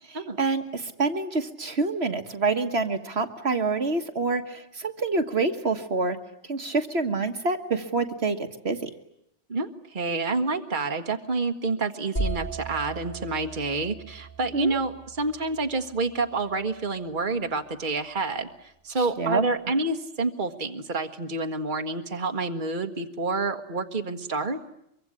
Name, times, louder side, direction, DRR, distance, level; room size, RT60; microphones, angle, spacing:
voice 1, 0.1-6.2 6.5-8.9 14.5-14.8 19.0-19.4, right 3 dB, 65° right, 7 dB, 1.8 m, -27 dB
voice 2, 9.5-24.6, right 3 dB, 45° right, 6 dB, 1.7 m, -28 dB
sound 1, 12.2-15.9, right 2 dB, 40° left, 6.8 m, -36 dB
24.0 x 24.0 x 9.9 m, 0.78 s
omnidirectional pair, 1.2 m